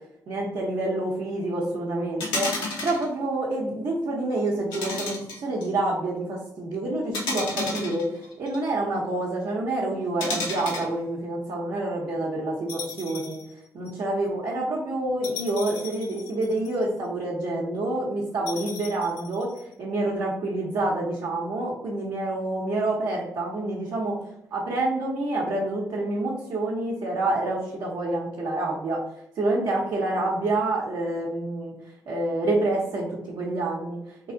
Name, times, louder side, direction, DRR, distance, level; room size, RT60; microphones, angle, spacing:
voice 1, 0.3-2.5 2.8-13.4 13.7-19.5 19.8-24.2 24.5-29.0 29.4-31.7 32.1-34.0, right 2 dB, 70° right, -5 dB, 0.9 m, -27 dB
sound 1, 2.2-3.1 4.7-5.6 7.1-8.6 10.2-10.9 12.7-13.4 13.9-14.0 15.2-16.8 18.5-19.6, left 3 dB, 90° left, 0.9 m, -32 dB
3.1 x 2.5 x 3.8 m, 0.78 s
supercardioid pair, 55°, 8 cm